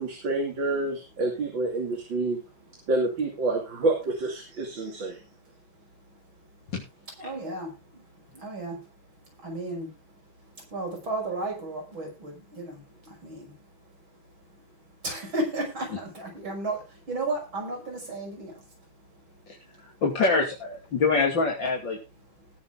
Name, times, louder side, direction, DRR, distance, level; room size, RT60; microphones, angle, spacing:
voice 1, 0.0-2.4 2.9-5.2, right 2 dB, 70° right, 1 dB, 3.3 m, -28 dB
voice 2, 7.2-7.7 8.3-8.8 9.4-9.9 10.7-13.5 15.0-18.5, right 2 dB, 85° right, 1 dB, 6.7 m, -33 dB
voice 3, 20.0-22.0, left 4 dB, 70° left, -1 dB, 3.3 m, -24 dB
19.5 x 6.9 x 3.7 m, 0.28 s
omnidirectional pair, 2.1 m